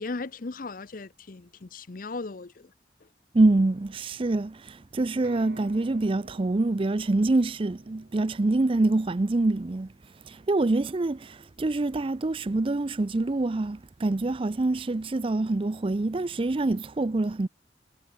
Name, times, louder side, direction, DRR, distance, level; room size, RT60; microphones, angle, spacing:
voice 1, 0.0-2.7 3.0-3.1, left 3 dB, 50° left, 0.7 m, -37 dB
voice 2, 3.3-9.9 10.3-17.5, right 2 dB, 30° right, 0.5 m, -25 dB
sound 1, 5.2-9.0, right 1 dB, 65° right, 3.1 m, -50 dB
head